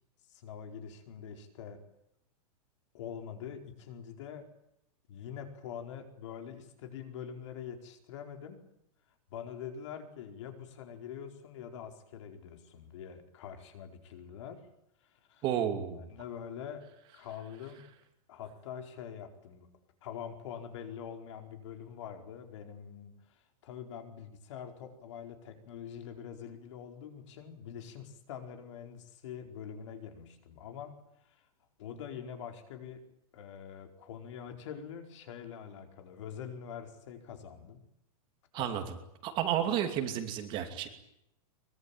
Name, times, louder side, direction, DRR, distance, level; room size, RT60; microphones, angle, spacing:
voice 1, 0.3-1.8 2.9-4.5 5.1-8.6 9.3-14.6 15.3-15.4 16.0-16.8 17.1-17.8 18.3-19.7 20.0-30.9 31.2-31.5 31.8-33.0 33.3-37.8 38.5-38.8, left 8 dB, 50° left, 5 dB, 4.7 m, -44 dB
voice 2, 15.4-16.1 38.5-38.8 39.2-40.9, right 10 dB, 25° right, 6 dB, 2.7 m, -31 dB
23.5 x 23.0 x 9.1 m, 0.78 s
supercardioid pair, 175°, 20 cm